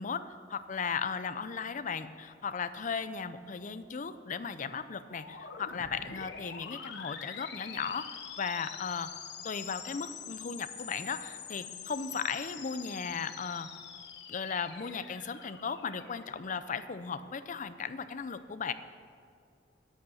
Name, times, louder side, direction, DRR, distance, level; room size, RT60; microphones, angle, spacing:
voice 1, 0.0-9.1 9.4-13.7 14.3-18.7, left 6 dB, 45° left, 12 dB, 0.5 m, -36 dB
sound 1, 5.1-16.8, left 7 dB, 65° left, 1.0 m, -45 dB
9.7 x 9.3 x 8.3 m, 2.3 s
head